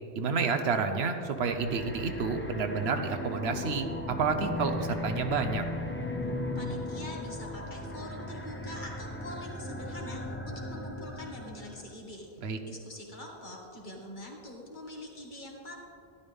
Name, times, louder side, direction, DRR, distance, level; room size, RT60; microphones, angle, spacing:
voice 1, 0.2-5.6 12.4-12.6, right 5 dB, 75° right, 7 dB, 1.0 m, -30 dB
sound 1, 1.3-11.9, left 1 dB, 15° left, 0.6 m, -37 dB
voice 2, 6.6-15.7, left 1 dB, 50° left, -2 dB, 1.8 m, -44 dB
12.5 x 11.5 x 3.5 m, 2.5 s
omnidirectional pair, 1.1 m